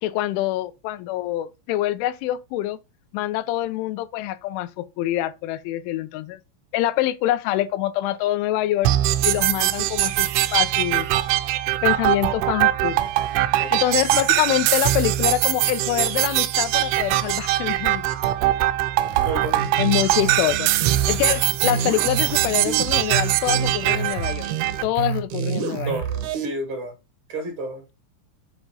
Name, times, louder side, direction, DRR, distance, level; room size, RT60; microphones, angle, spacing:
voice 1, 0.0-2.8 3.1-6.4 6.7-8.9 9.2-11.1 11.8-13.0 13.7-18.1 19.8-24.5 24.8-26.0, left 14 dB, 90° left, 3.2 m, -25 dB
sound 1, 8.8-24.8, right 15 dB, 85° right, 3.2 m, -22 dB
sound 2, 19.1-26.5, right 7 dB, 65° right, 2.0 m, -28 dB
voice 2, 19.3-19.8 25.8-26.9 27.3-27.9, right 2 dB, 50° right, 1.5 m, -31 dB
7.0 x 5.4 x 4.8 m
omnidirectional pair, 5.5 m